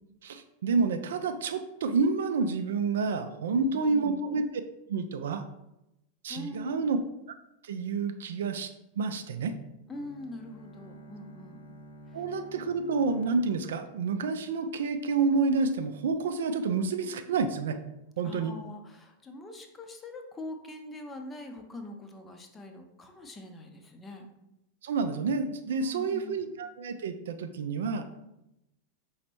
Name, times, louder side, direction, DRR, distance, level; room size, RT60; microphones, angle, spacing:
voice 1, 0.2-4.4 4.9-5.4 6.2-7.0 7.6-9.5 12.1-17.8 18.2-18.5 24.8-28.1, right 4 dB, 60° right, 8 dB, 0.3 m, -29 dB
voice 2, 3.6-4.1 6.3-6.9 9.9-11.6 12.1-12.2 18.2-24.3 25.8-26.4, left 2 dB, 15° left, 5 dB, 0.6 m, -43 dB
Bowed string instrument, 9.9-14.9, equal, 75° left, 0.4 m, -51 dB
4.9 x 3.1 x 2.9 m, 0.88 s
figure-of-eight pair, 90°, 0 cm